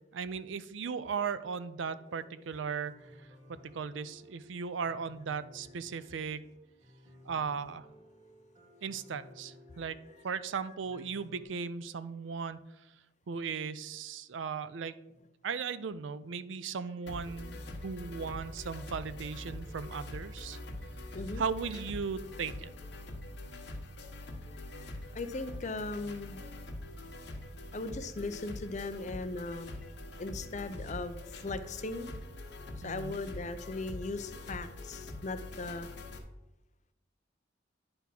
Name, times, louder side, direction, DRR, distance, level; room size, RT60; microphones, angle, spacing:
voice 1, 0.1-3.1 3.5-6.4 7.3-7.9 8.8-10.0 10.2-12.6 13.3-15.0 15.4-20.6 21.4-22.7 32.8-33.2, right 6 dB, 80° right, 15 dB, 0.4 m, -37 dB
sound 1, 1.7-11.4, left 1 dB, 30° right, 1.7 m, -58 dB
sound 2, 17.1-36.2, left 1 dB, 65° left, 1.2 m, -44 dB
voice 2, 24.7-26.4 27.7-29.8 30.2-32.1 32.8-35.9, left 3 dB, 40° left, 10 dB, 0.5 m, -38 dB
9.9 x 3.5 x 5.9 m, 0.94 s
head